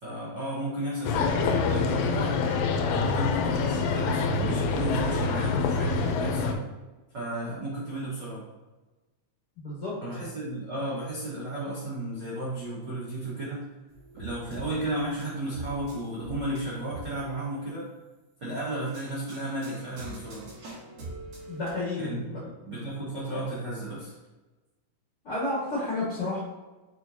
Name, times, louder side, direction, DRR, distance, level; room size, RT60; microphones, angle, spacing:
voice 1, 0.0-2.3 2.9-6.6 7.1-8.4 10.0-13.6 14.2-17.9 18.4-20.5 22.0-24.1, right 1 dB, 80° right, -10 dB, 1.0 m, -33 dB
sound 1, 1.0-6.5, left 4 dB, 85° left, 2.8 m, -26 dB
voice 2, 9.6-9.9 21.5-22.4 25.2-26.4, left 2 dB, 55° left, -7 dB, 1.6 m, -31 dB
sound 2, 13.9-17.4 18.7-21.7, right 2 dB, 50° right, 3.0 m, -43 dB
7.9 x 4.5 x 2.7 m, 1.2 s
omnidirectional pair, 5.0 m